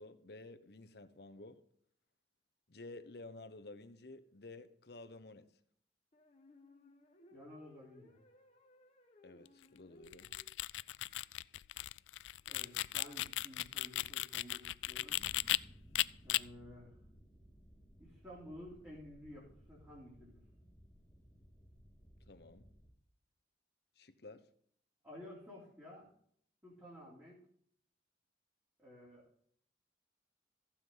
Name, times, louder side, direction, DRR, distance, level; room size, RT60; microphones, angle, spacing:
voice 1, 0.0-1.6 2.7-5.5 9.2-10.3 22.3-22.7 24.0-24.4, left 2 dB, 60° left, 1.0 m, -52 dB
sound 1, 3.8-4.0 6.1-10.5, left 2 dB, 35° left, 1.3 m, -63 dB
voice 2, 7.3-8.2 12.5-15.2 16.2-17.0 18.0-20.4 25.0-26.1 26.6-27.4 28.8-29.2, left 1 dB, 15° right, 3.4 m, -53 dB
sound 2, 10.1-15.6 15.9-16.4, left 16 dB, 85° left, 0.3 m, -36 dB
sound 3, 15.1-22.9, equal, 15° left, 1.6 m, -61 dB
15.0 x 7.3 x 3.9 m
head